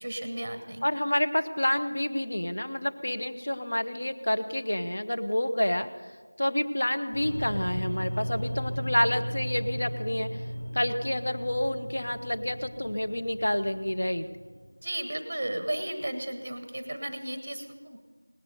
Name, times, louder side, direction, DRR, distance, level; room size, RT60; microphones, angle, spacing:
voice 1, 0.0-0.8 14.8-18.0, right 1 dB, 15° right, 8 dB, 0.9 m, -34 dB
voice 2, 0.8-5.9 6.4-10.4 10.7-14.3, left 1 dB, 35° left, 7 dB, 0.8 m, -28 dB
sound 1, 7.1-14.7, equal, 10° left, 3.3 m, -36 dB
18.5 x 10.5 x 6.7 m, 1.4 s
figure-of-eight pair, 175°, 0 cm